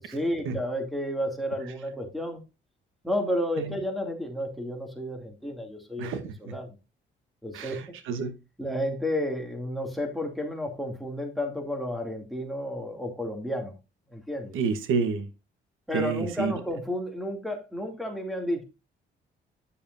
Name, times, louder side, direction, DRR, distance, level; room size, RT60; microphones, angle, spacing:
voice 1, 0.1-2.4 3.0-6.8 7.4-7.8 8.6-13.8 14.1-14.5 15.9-18.6, left 1 dB, ahead, 2.5 m, -31 dB
voice 2, 6.0-6.5 7.5-8.3 14.5-15.3 15.9-16.5, right 5 dB, 85° right, 1.2 m, -29 dB
9.9 x 7.0 x 2.6 m
cardioid pair, 90°, 20 cm